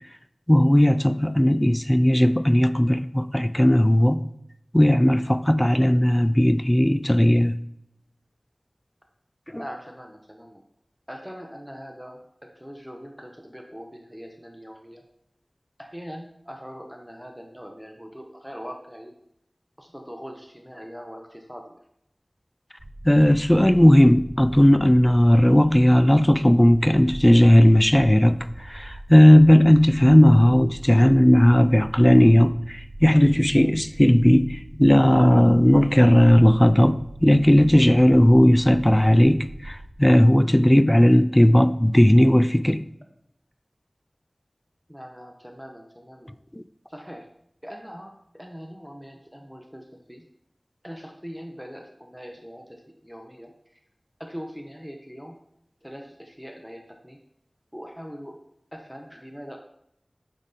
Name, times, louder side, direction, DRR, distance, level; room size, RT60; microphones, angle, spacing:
voice 1, 0.5-4.2 4.7-7.6 9.5-9.6 23.0-42.8 46.5-46.6, equal, 15° left, 0.4 m, -16 dB
voice 2, 9.6-10.6 11.1-15.0 15.8-19.1 19.8-21.8 44.9-46.4 46.9-47.3 47.6-50.2 50.8-53.8 54.2-55.4 55.8-57.2 57.7-58.4 58.7-59.6, equal, ahead, 0.7 m, -41 dB
sound 1, 22.8-40.0, right 1 dB, 40° right, 0.8 m, -41 dB
9.2 x 3.6 x 3.9 m
wide cardioid pair, 45°, 0 cm